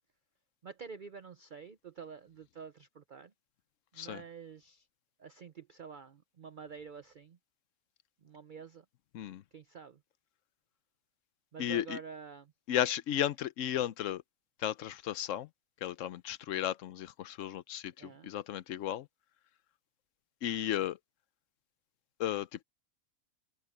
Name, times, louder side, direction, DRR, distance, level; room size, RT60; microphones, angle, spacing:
voice 1, 0.6-3.3 3.9-4.9 5.2-7.4 8.2-8.8 9.5-10.0 11.5-12.5 18.0-18.3, right 6 dB, 45° right, 0.8 m, -48 dB
voice 2, 11.6-12.0 12.7-14.2 14.6-15.5 15.8-19.1 20.4-21.0 22.2-22.6, left 11 dB, 65° left, 0.9 m, -34 dB
open air
omnidirectional pair, 1.5 m